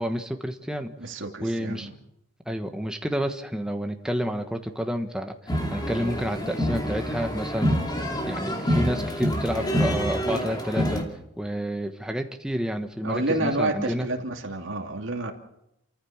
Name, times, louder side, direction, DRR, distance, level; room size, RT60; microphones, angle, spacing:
voice 1, 0.0-1.9 2.5-7.8 8.3-11.0 11.4-14.1, equal, 5° right, 5 dB, 1.3 m, -30 dB
voice 2, 1.0-1.9 13.0-15.3, right 2 dB, 60° right, 2 dB, 2.6 m, -29 dB
sound 1, 5.5-11.0, equal, 20° left, 2.6 m, -27 dB
28.5 x 14.5 x 7.2 m, 0.84 s
head